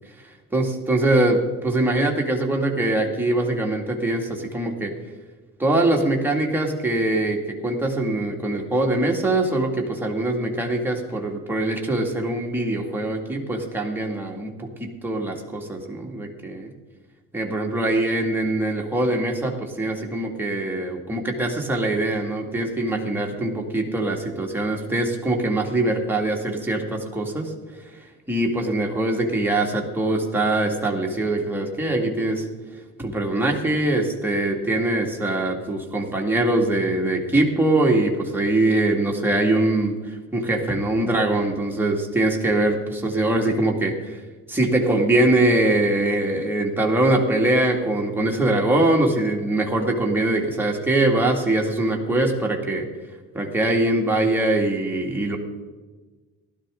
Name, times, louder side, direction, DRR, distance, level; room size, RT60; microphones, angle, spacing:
voice 1, 0.5-4.9 5.6-16.7 17.3-27.5 28.3-32.4 33.0-44.2 44.5-52.9 53.3-55.4, right 2 dB, 5° right, 0 dB, 2.2 m, -22 dB
15.5 x 12.0 x 3.8 m, 1.3 s
cardioid pair, 90°, 30 cm